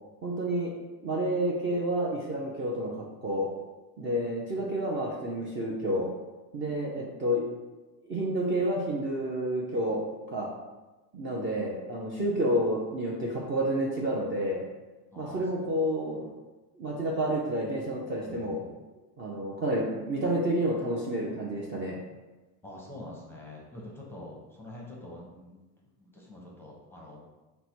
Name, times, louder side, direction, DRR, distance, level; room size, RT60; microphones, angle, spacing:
voice 1, 0.2-0.7 1.0-2.9 3.2-3.5 4.0-6.1 6.5-7.4 8.0-10.0 10.3-10.5 11.1-14.6 15.2-16.2 16.7-18.6 19.2-22.0, right 1 dB, 25° right, -4 dB, 0.5 m, -29 dB
voice 2, 6.6-6.9 15.1-16.3 18.3-18.7 22.6-25.6 26.0-27.3, left 1 dB, 5° left, -4 dB, 0.7 m, -46 dB
4.0 x 2.2 x 4.4 m, 1.1 s
supercardioid pair, 120°, 48 cm